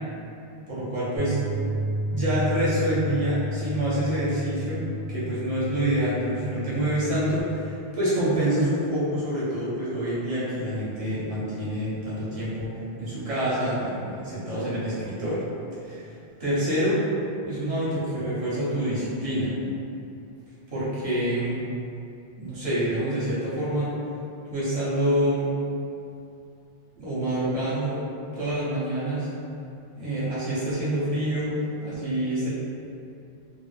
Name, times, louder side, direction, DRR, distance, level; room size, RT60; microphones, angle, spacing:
voice 1, 0.7-1.4 2.1-4.8 5.1-12.7 13.0-15.4 15.8-16.1 16.4-17.0 17.4-19.5 20.7-21.6 22.4-23.9 24.5-25.5 27.0-28.0 28.3-29.3 30.0-32.5, right 1 dB, 35° right, -10 dB, 0.8 m, -27 dB
Bass guitar, 1.2-7.4, equal, 5° left, 0.6 m, -32 dB
2.1 x 2.1 x 3.2 m, 2.6 s
omnidirectional pair, 1.2 m